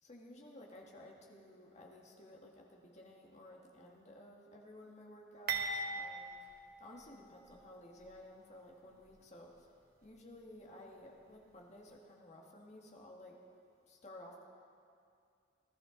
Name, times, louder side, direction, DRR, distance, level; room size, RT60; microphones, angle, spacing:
voice 1, 0.0-6.5 6.8-9.7 10.0-13.4 13.9-14.4, left 1 dB, 40° left, -1 dB, 1.8 m, -55 dB
sound 1, 5.5-7.6 8.0-8.2 9.0-9.2, right 4 dB, 55° right, 1.2 m, -40 dB
20.0 x 13.0 x 3.9 m, 2.4 s
head